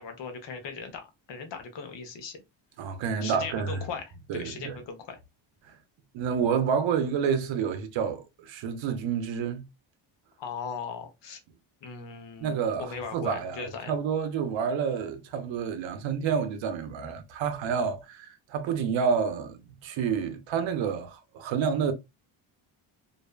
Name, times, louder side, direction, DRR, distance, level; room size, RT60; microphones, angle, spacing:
voice 1, 0.0-2.4 3.2-5.2 10.4-11.4 11.8-13.9, left 5 dB, 60° left, 0.9 m, -38 dB
voice 2, 2.8-3.8 4.3-4.7 6.1-9.6 12.4-21.9, right 6 dB, 65° right, 0.7 m, -29 dB
2.6 x 2.1 x 2.2 m
cardioid pair, 105°, 49 cm